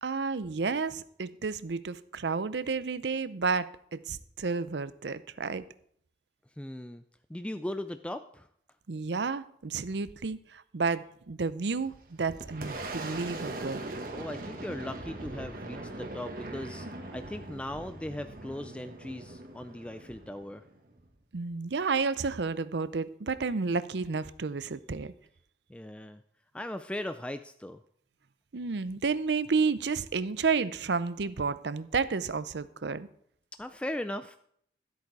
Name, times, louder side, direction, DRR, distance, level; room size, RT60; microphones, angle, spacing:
voice 1, 0.0-5.6 8.9-11.9 12.2-13.8 21.3-25.1 28.5-33.1, right 4 dB, 80° right, 15 dB, 0.6 m, -31 dB
voice 2, 6.6-7.0 7.3-8.5 14.1-20.6 25.7-26.2 26.5-27.8 33.6-34.4, left 1 dB, 5° left, 9 dB, 0.3 m, -38 dB
Boom, 11.7-21.1, right 2 dB, 50° right, 1.4 m, -41 dB
13.5 x 8.3 x 4.8 m, 0.67 s
head